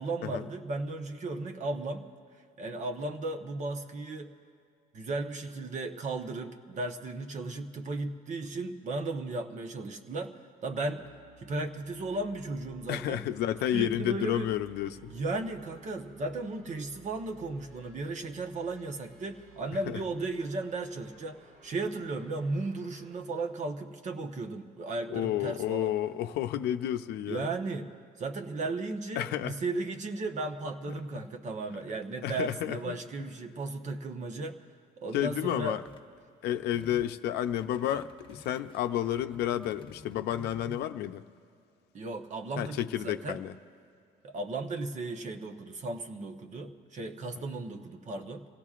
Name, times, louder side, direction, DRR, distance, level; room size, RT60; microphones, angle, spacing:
voice 1, 0.0-2.1 2.6-4.3 4.9-10.3 10.6-11.0 11.4-13.2 13.7-14.5 15.1-25.9 27.3-27.9 28.2-34.6 35.0-35.8 41.9-43.4 44.2-48.5, right 2 dB, 45° right, 4 dB, 1.1 m, -35 dB
sound 1, 11.0-23.2, right 1 dB, 75° right, 3.3 m, -56 dB
voice 2, 12.9-15.1 25.1-27.5 29.2-29.5 30.9-31.2 32.2-32.9 35.1-35.8 36.4-41.3 42.6-43.5, left 11 dB, 75° left, 9 dB, 0.6 m, -31 dB
sound 2, 35.8-36.1 36.5-37.1 37.5-40.8, left 3 dB, 30° left, 1.1 m, -51 dB
27.5 x 17.0 x 2.5 m, 2.3 s
cardioid pair, 110°, 17 cm